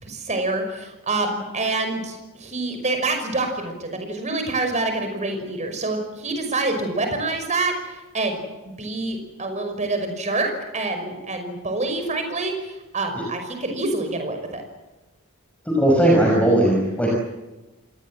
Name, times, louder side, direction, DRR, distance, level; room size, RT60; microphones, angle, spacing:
voice 1, 0.0-14.6, right 2 dB, 35° right, 6 dB, 5.7 m, -27 dB
voice 2, 15.8-17.1, right 1 dB, 5° left, -2 dB, 5.8 m, -17 dB
28.5 x 20.0 x 7.7 m, 1.1 s
head